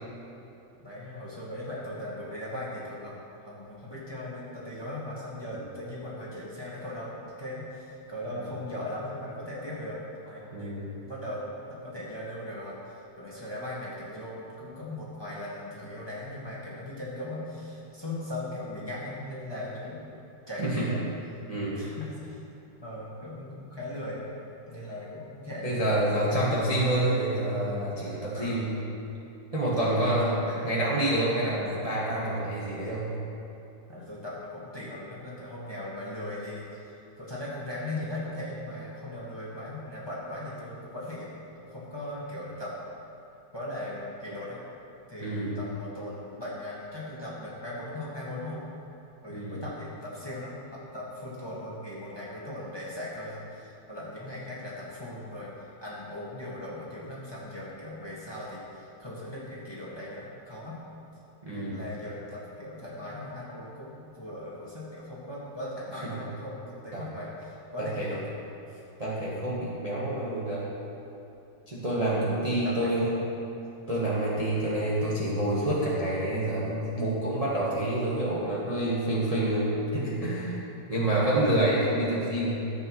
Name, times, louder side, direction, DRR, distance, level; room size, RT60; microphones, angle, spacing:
voice 1, 0.8-10.0 10.3-20.1 20.5-21.0 21.7-22.4 22.8-24.3 24.7-25.8 26.1-26.6 28.3-28.7 29.7-30.8 33.9-41.3 41.6-43.0 43.5-44.6 45.1-48.6 49.2-60.8 61.5-68.2 68.7-68.8 72.0-73.2 74.5-74.7 80.9-81.4, left 1 dB, 15° left, -7 dB, 1.6 m, -39 dB
voice 2, 10.5-10.9 20.6-20.9 21.5-21.8 25.6-28.8 29.5-30.4 30.6-33.1 45.2-45.5 49.3-49.6 61.4-61.8 66.0-66.1 66.9-67.0 67.8-68.1 69.0-70.7 71.7-73.1 73.9-82.6, right 1 dB, 25° right, -7 dB, 1.2 m, -28 dB
13.5 x 7.8 x 3.1 m, 2.9 s
omnidirectional pair, 2.0 m